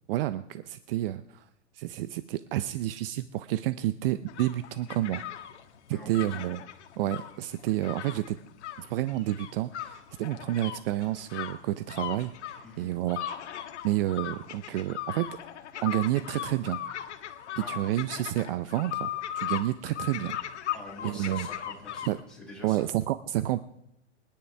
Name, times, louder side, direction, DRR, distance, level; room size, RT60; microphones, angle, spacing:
voice 1, 0.1-1.4 1.7-5.2 5.9-6.6 7.0-8.4 8.8-13.2 13.8-15.3 15.8-16.8 17.6-20.4 21.0-21.5 22.0-22.2 22.6-23.6, right 14 dB, 50° right, 13 dB, 0.6 m, -30 dB
sound 1, 4.3-22.2, left 11 dB, 70° left, 1.5 m, -38 dB
voice 2, 5.9-6.4 12.6-12.9 17.6-17.8 20.7-22.9, left 1 dB, ahead, -6 dB, 7.3 m, -45 dB
25.0 x 10.0 x 3.4 m, 0.80 s
hypercardioid pair, 125°, 36 cm